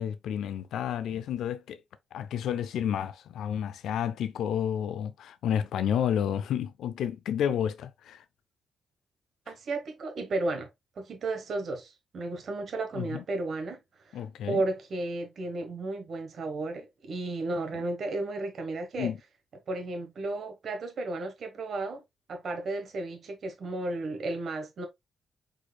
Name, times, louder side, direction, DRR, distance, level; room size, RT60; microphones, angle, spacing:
voice 1, 0.0-1.8 2.1-8.2 12.9-13.2 14.1-14.6 19.0-19.2, left 9 dB, 75° left, 0.5 m, -30 dB
voice 2, 9.5-10.7 11.0-13.8 14.0-19.1 19.7-22.0 22.3-24.9, right 2 dB, 60° right, 1.2 m, -33 dB
4.9 x 4.3 x 2.2 m
hypercardioid pair, 45°, 0 cm